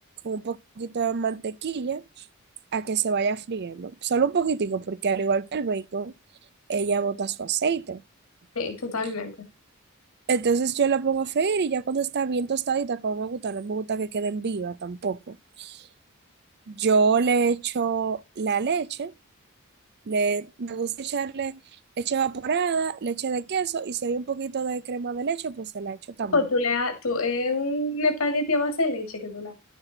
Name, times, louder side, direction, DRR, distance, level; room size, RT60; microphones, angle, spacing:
voice 1, 0.2-2.0 2.7-6.1 6.7-8.0 10.3-15.8 16.7-19.1 20.1-21.6 22.0-26.4, right 5 dB, 50° right, 0.5 m, -26 dB
voice 2, 8.6-9.3 26.3-29.5, left 3 dB, 70° left, 1.8 m, -26 dB
11.0 x 6.3 x 3.9 m
head